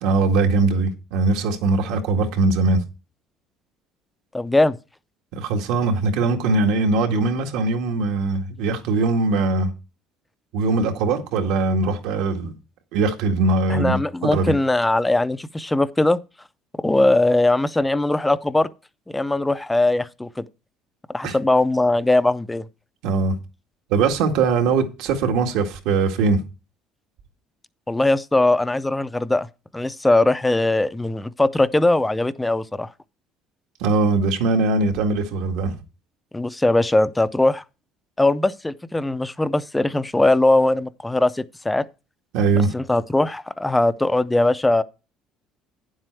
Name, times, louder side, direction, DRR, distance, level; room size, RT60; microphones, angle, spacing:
voice 1, 0.0-2.8 5.3-9.7 10.5-12.6 12.9-14.0 14.3-14.6 21.2-21.4 23.0-23.3 23.9-26.4 33.8-35.7 42.3-42.7, right 3 dB, 75° right, 1.8 m, -21 dB
voice 2, 4.3-4.8 13.7-16.2 16.8-18.7 19.1-20.4 21.1-22.6 27.9-29.5 29.7-32.9 36.3-37.6 38.2-41.8 42.7-44.8, left 2 dB, 5° left, 0.4 m, -20 dB
10.5 x 7.6 x 4.6 m
cardioid pair, 170°, 0 cm